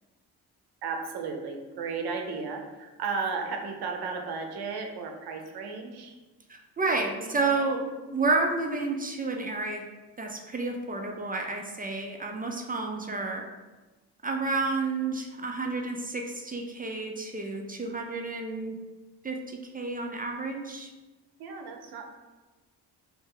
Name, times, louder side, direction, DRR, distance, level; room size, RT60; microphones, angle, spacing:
voice 1, 0.8-6.1 6.9-7.8 13.0-13.3 21.4-22.1, right 4 dB, 60° right, 3 dB, 0.6 m, -35 dB
voice 2, 6.5-7.8 8.1-9.8 10.2-13.4 14.2-18.8 19.2-20.9, right 3 dB, 25° right, 2 dB, 0.3 m, -30 dB
2.7 x 2.1 x 3.6 m, 1.2 s
supercardioid pair, 60°, 42 cm